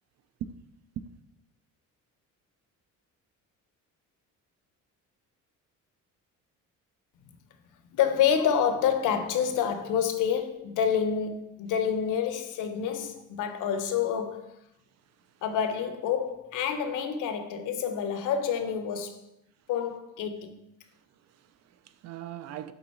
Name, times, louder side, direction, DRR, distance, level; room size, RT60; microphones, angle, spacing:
voice 1, 7.9-14.5 15.4-19.2 19.7-20.6, left 8 dB, 75° left, 0.8 m, -28 dB
voice 2, 21.2-22.7, right 11 dB, 55° right, 0.4 m, -40 dB
7.7 x 3.8 x 4.3 m
cardioid pair, 150°, 31 cm